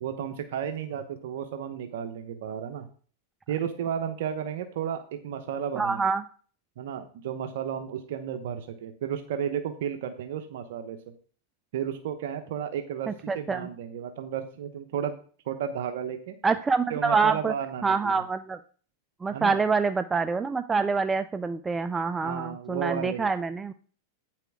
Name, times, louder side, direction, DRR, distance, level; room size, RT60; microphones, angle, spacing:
voice 1, 0.0-2.9 3.5-6.0 6.8-11.0 11.7-15.2 15.4-16.4 16.9-18.2 19.3-19.6 22.2-23.3, right 8 dB, 70° right, 7 dB, 1.0 m, -33 dB
voice 2, 5.8-6.2 13.1-13.7 16.4-17.5 17.8-18.6 19.2-23.7, right 4 dB, 15° right, 11 dB, 0.5 m, -26 dB
9.4 x 7.5 x 3.6 m, 0.42 s
hypercardioid pair, 120°, 0 cm